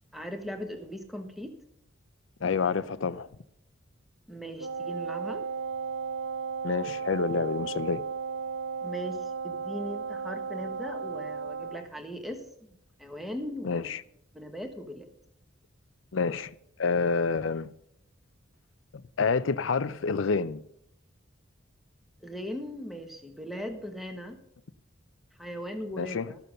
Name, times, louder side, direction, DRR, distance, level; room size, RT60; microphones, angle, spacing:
voice 1, 0.1-1.5 4.3-5.4 8.8-9.2 9.4-12.7 13.0-13.9 14.3-15.1 22.2-24.4 25.4-26.4, equal, ahead, 1.3 m, -39 dB
voice 2, 2.4-3.3 6.6-8.0 13.6-14.0 16.1-16.5 16.8-17.7 19.2-20.6 26.0-26.3, left 4 dB, 75° left, 0.5 m, -28 dB
Wind instrument woodwind instrument, 4.6-11.9, right 6 dB, 85° right, 0.8 m, -35 dB
14.0 x 6.8 x 6.5 m
head